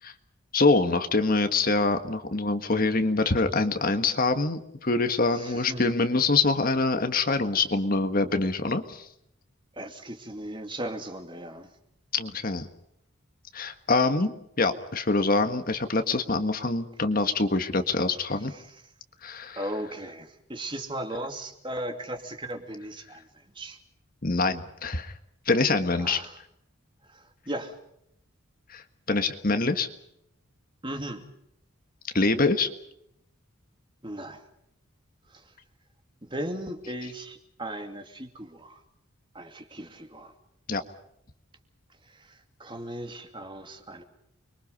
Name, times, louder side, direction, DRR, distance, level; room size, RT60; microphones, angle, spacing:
voice 1, 0.5-9.1 12.1-12.7 13.5-18.5 19.2-19.6 24.2-25.1 25.5-26.3 28.7-28.8 29.1-29.9 32.1-32.7 40.7-40.8, left 3 dB, 40° left, 8 dB, 1.6 m, -25 dB
voice 2, 5.3-5.9 9.8-11.7 18.5-18.7 19.6-23.3 23.5-23.8 26.0-26.4 27.1-27.7 30.8-31.2 34.0-34.5 35.3-35.4 36.2-38.8 39.3-40.3 42.1-44.1, right 1 dB, 25° right, 5 dB, 2.6 m, -37 dB
29.5 x 23.0 x 5.4 m, 0.77 s
head